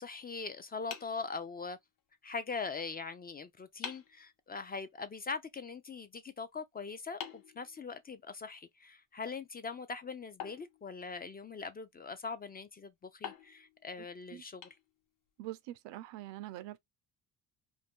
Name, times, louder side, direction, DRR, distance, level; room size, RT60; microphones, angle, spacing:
voice 1, 0.0-1.8 2.2-14.7, left 4 dB, 25° left, 0.3 m, -42 dB
sound 1, 0.9-2.0 3.2-3.3 3.8-4.2 7.2-8.4 10.4-11.5 13.2-15.3, left 8 dB, 50° left, 0.8 m, -48 dB
voice 2, 15.4-16.8, right 15 dB, 80° right, 0.6 m, -44 dB
2.6 x 2.2 x 3.4 m
cardioid pair, 90°, 43 cm